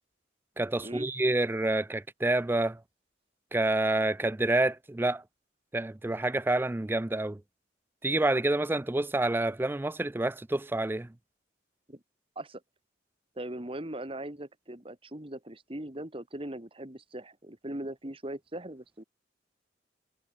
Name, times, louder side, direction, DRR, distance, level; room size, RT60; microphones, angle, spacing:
voice 1, 0.6-2.8 3.5-5.2 5.7-7.4 8.0-11.1, right 2 dB, 10° right, 0.4 m, -28 dB
voice 2, 13.4-19.0, right 1 dB, 30° right, 1.9 m, -40 dB
head